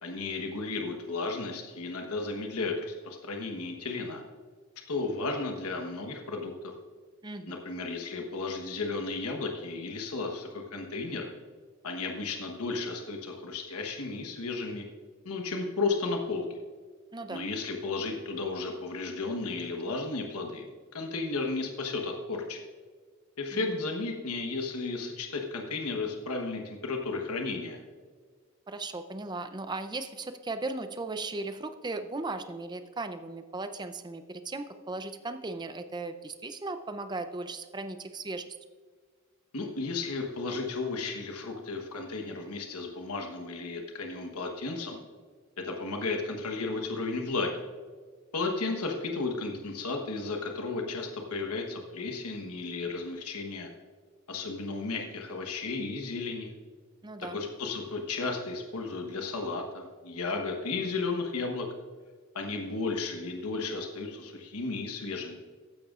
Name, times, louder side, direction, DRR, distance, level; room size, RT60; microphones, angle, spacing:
voice 1, 0.0-4.2 4.9-6.7 7.5-11.3 11.8-14.8 15.2-16.6 17.3-22.6 23.4-27.8 39.5-45.0 45.6-47.6 48.3-53.7 54.3-56.5 57.3-61.7 62.3-65.4, left 3 dB, 85° left, 3 dB, 1.2 m, -34 dB
voice 2, 7.2-7.6 17.1-17.4 23.5-23.7 28.7-38.5 57.0-57.4, right 2 dB, 20° right, 9 dB, 0.5 m, -37 dB
14.5 x 10.5 x 2.5 m, 1.6 s
head